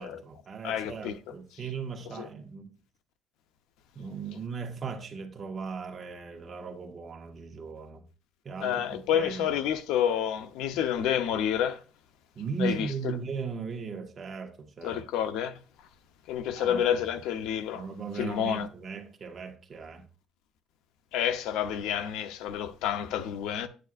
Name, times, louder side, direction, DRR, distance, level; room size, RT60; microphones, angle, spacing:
voice 1, 0.0-2.7 3.9-8.0 8.4-9.5 10.7-10.8 12.3-15.0 16.5-17.0 17.7-20.0, right 5 dB, 30° right, 1.4 m, -38 dB
voice 2, 0.6-1.1 2.2-2.3 8.6-11.8 12.6-12.9 14.8-15.5 16.3-17.8 18.2-18.7 21.1-23.7, left 9 dB, 90° left, 0.8 m, -29 dB
9.2 x 9.2 x 2.5 m
cardioid pair, 155°, 0 cm